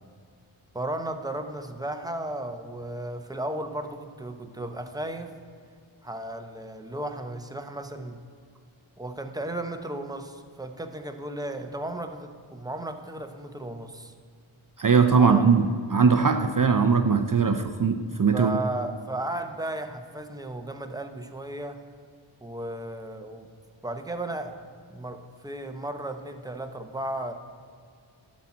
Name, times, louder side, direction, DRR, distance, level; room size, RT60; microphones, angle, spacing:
voice 1, 0.7-5.3 6.0-8.2 9.0-14.1 15.1-15.5 18.3-21.8 22.4-23.5 23.8-27.3, right 1 dB, 10° right, 6 dB, 0.8 m, -35 dB
voice 2, 14.8-18.6, right 5 dB, 40° right, 7 dB, 0.5 m, -20 dB
12.0 x 4.3 x 7.2 m, 2.2 s
wide cardioid pair, 40°, 49 cm